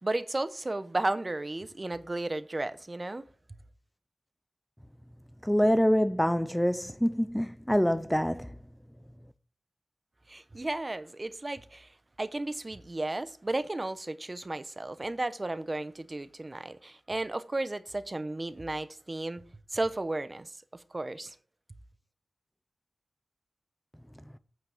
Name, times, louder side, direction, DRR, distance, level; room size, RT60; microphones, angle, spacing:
voice 1, 0.0-3.2 10.3-11.9 12.2-19.4 19.7-21.4, right 2 dB, 30° right, 0.8 m, -34 dB
voice 2, 5.4-8.5, equal, 5° left, 0.4 m, -25 dB
9.1 x 5.8 x 7.6 m
wide cardioid pair, 95°, 0 cm